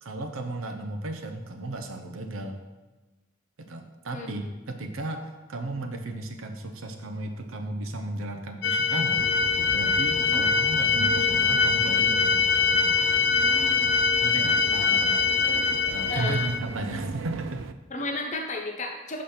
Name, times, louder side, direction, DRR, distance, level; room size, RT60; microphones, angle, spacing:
voice 1, 0.0-2.6 3.6-9.3 9.7-13.0 14.2-15.3 15.9-17.7, right 2 dB, 80° right, 5 dB, 0.7 m, -34 dB
sound 1, 8.6-16.6, left 5 dB, 50° left, 0.5 m, -23 dB
sound 2, 9.2-17.7, right 6 dB, 65° right, 0.3 m, -38 dB
voice 2, 16.1-16.4 17.9-19.2, left 2 dB, 35° left, 2 dB, 0.9 m, -33 dB
5.9 x 5.0 x 5.6 m, 1.2 s
head